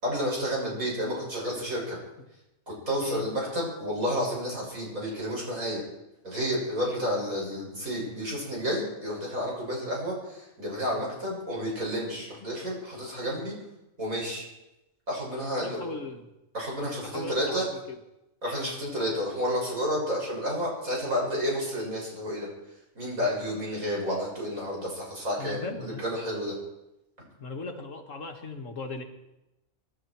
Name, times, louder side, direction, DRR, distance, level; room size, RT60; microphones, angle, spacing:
voice 1, 0.0-2.0 2.7-5.8 6.2-13.5 14.0-14.5 15.1-15.8 16.5-17.7 18.4-22.5 23.0-26.6 27.2-27.3, equal, 90° right, -3 dB, 7.1 m, -31 dB
voice 2, 15.6-16.3 16.9-18.0 18.7-18.8 25.4-26.0 27.4-29.0, left 3 dB, 70° left, 4 dB, 2.1 m, -38 dB
24.5 x 13.0 x 4.6 m, 0.92 s
omnidirectional pair, 1.4 m